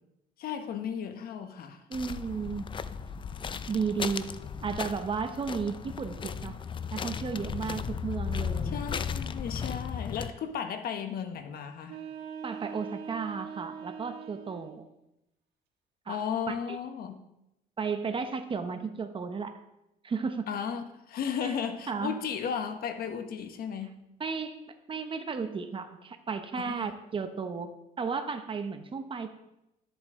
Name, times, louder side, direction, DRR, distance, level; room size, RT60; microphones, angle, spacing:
voice 1, 0.4-1.8 8.6-12.0 16.1-17.2 20.5-24.0 26.6-26.9, left 7 dB, 60° left, 8 dB, 1.1 m, -35 dB
sound 1, 1.9-10.3, left 6 dB, 30° left, 0.5 m, -36 dB
voice 2, 1.9-2.7 3.7-4.3 4.6-6.6 6.9-8.7 12.4-14.9 16.1-16.2 16.5-16.8 17.8-19.6 20.0-20.5 21.4-21.5 21.9-22.1 24.2-24.6 24.9-29.4, right 5 dB, 30° right, 8 dB, 1.0 m, -34 dB
sound 2, 11.8-14.8, right 7 dB, 80° right, 1.5 m, -42 dB
12.5 x 8.0 x 3.7 m, 0.89 s
cardioid pair, 110°, 17 cm